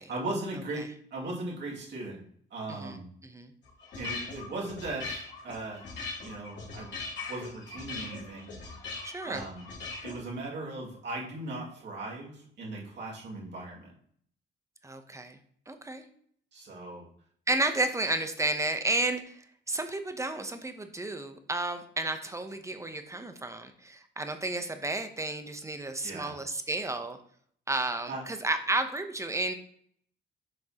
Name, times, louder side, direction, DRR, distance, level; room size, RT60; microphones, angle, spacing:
voice 1, 0.1-2.2 2.5-3.1 3.9-5.9 6.2-6.9 7.3-8.5 9.2-9.6 10.0-13.9 16.5-17.0 26.0-26.4 28.1-28.2, right 2 dB, 60° right, -4 dB, 2.4 m, -38 dB
sound 1, 3.6-10.2, left 4 dB, 65° left, 2.8 m, -40 dB
voice 2, 9.0-9.4 14.8-15.4 15.7-16.0 17.5-19.3 19.7-27.2 27.7-29.5, right 2 dB, 15° right, 8 dB, 0.8 m, -32 dB
7.5 x 5.2 x 2.9 m, 0.62 s
cardioid pair, 90°, 20 cm